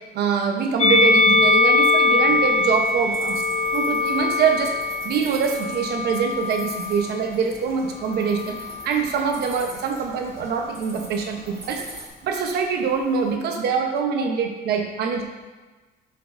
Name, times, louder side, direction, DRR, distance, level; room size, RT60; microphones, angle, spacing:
voice 1, 0.1-3.4 3.7-4.7 5.0-8.6 8.8-11.8 12.2-15.2, right 6 dB, 75° right, 3 dB, 1.0 m, -24 dB
Musical instrument, 0.8-7.2 8.0-9.0, left 3 dB, 40° left, 0.7 m, -21 dB
sound 1, 2.2-12.1, right 2 dB, 15° right, 1.3 m, -43 dB
7.3 x 7.0 x 2.7 m, 1.2 s
cardioid pair, 110°, 17 cm